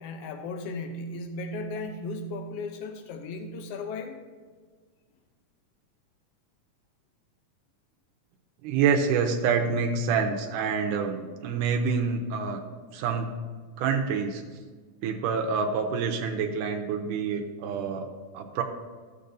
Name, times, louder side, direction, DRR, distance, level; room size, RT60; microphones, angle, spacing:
voice 1, 0.0-4.2, left 2 dB, 85° left, 5 dB, 1.4 m, -36 dB
voice 2, 8.6-12.6 12.9-13.4 13.8-14.4 15.0-18.6, right 5 dB, 90° right, 3 dB, 2.2 m, -27 dB
15.0 x 6.7 x 2.6 m, 1.5 s
omnidirectional pair, 3.6 m